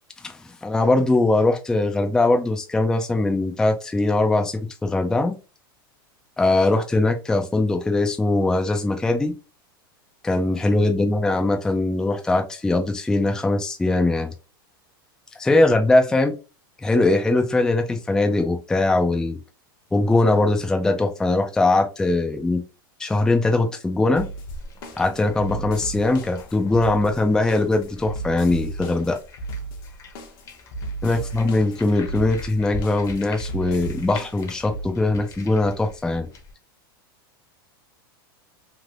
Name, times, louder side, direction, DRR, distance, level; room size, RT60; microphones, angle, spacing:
voice 1, 0.2-5.4 6.4-9.4 10.2-14.3 15.4-16.3 16.8-19.4 19.9-22.6 23.0-24.3 25.0-29.2 31.0-36.3, left 2 dB, 5° left, 4 dB, 0.4 m, -21 dB
sound 1, 24.2-34.8, right 3 dB, 65° left, 0.8 m, -35 dB
sound 2, 24.2-36.5, left 2 dB, 25° left, 0.8 m, -42 dB
3.3 x 2.5 x 2.4 m, 0.31 s
supercardioid pair, 125°, 12 cm